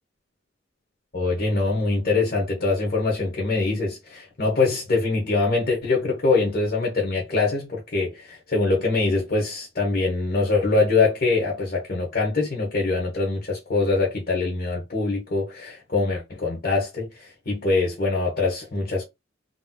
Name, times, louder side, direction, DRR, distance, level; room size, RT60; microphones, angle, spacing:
voice 1, 1.1-19.0, left 3 dB, 50° left, 1.3 m, -23 dB
3.4 x 2.9 x 2.3 m
head